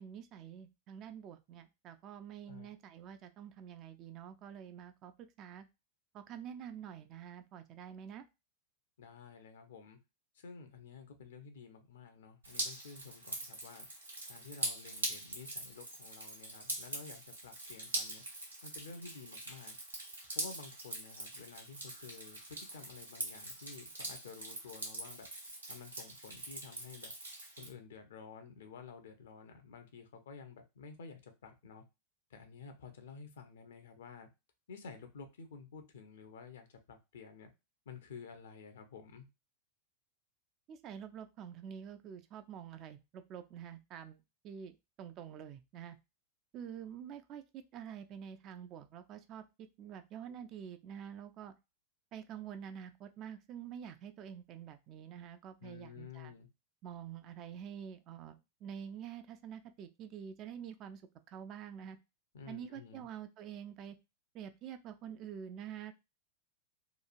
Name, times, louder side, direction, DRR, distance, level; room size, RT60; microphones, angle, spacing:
voice 1, 0.0-5.1 5.4-5.7 6.1-8.3 40.7-44.7 45.0-46.0 46.5-49.4 49.8-51.5 52.1-56.3 56.8-61.0 61.3-62.0 62.5-64.0 64.3-65.9, right 8 dB, 35° right, 9 dB, 0.3 m, -47 dB
voice 2, 2.4-2.8 9.0-10.0 10.3-13.9 14.3-18.2 18.6-19.8 20.3-25.3 25.7-27.1 27.6-31.8 32.3-34.3 34.7-37.5 37.9-39.3 55.6-56.5 62.3-63.1, left 5 dB, 60° left, 7 dB, 0.6 m, -51 dB
Drip, 12.4-27.7, right 2 dB, 80° right, 0.9 m, -43 dB
2.9 x 2.3 x 2.5 m, 0.25 s
figure-of-eight pair, 90°, 0 cm